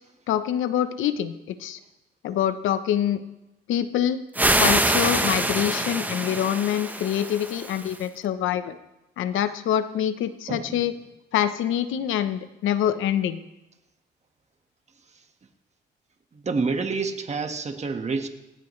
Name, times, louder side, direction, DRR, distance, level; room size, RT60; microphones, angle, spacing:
voice 1, 0.3-1.8 2.2-3.2 3.7-4.2 4.6-8.8 9.2-10.9 11.3-13.4, left 10 dB, 80° left, 12 dB, 1.0 m, -25 dB
sound 1, 4.3-8.0, right 1 dB, 10° right, 1.1 m, -24 dB
voice 2, 10.5-10.9 15.1-15.2 16.3-18.3, right 4 dB, 35° right, 5 dB, 1.7 m, -28 dB
17.5 x 17.0 x 3.3 m, 0.96 s
cardioid pair, 90°, 20 cm